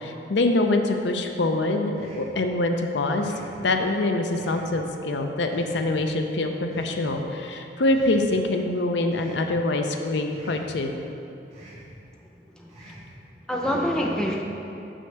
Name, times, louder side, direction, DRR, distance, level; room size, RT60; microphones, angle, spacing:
voice 1, 0.0-3.3 3.6-11.0, left 2 dB, 85° left, 4 dB, 0.6 m, -25 dB
sound 1, 1.9-2.4 3.1-3.5 4.3-4.7 5.5-5.9 6.7-7.1 7.9-8.3 9.1-9.5 10.3-10.7 11.5-11.9 12.7-13.1, right 1 dB, 35° right, 1.7 m, -47 dB
voice 2, 12.6-13.0 13.5-14.4, equal, 5° left, -1 dB, 0.5 m, -26 dB
6.3 x 4.5 x 6.5 m, 2.8 s
head